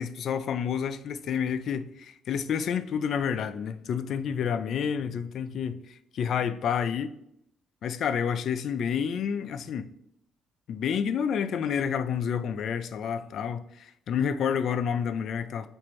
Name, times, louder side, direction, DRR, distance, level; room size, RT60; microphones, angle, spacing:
voice 1, 0.0-7.1 7.8-9.9 10.7-15.7, left 7 dB, 60° left, 0.3 m, -29 dB
4.2 x 2.6 x 4.6 m
cardioid pair, 120°, 0 cm